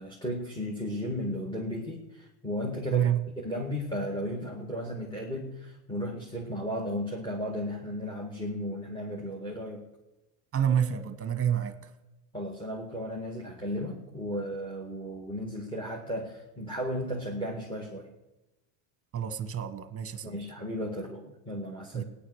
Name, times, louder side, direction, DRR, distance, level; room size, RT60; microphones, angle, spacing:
voice 1, 0.0-3.1 3.4-9.9 12.3-18.1 20.2-22.0, equal, 10° left, 2.0 m, -35 dB
voice 2, 10.5-11.7 19.1-20.4 21.9-22.0, right 9 dB, 25° right, 1.3 m, -28 dB
17.5 x 9.9 x 6.4 m
cardioid pair, 130°, 50 cm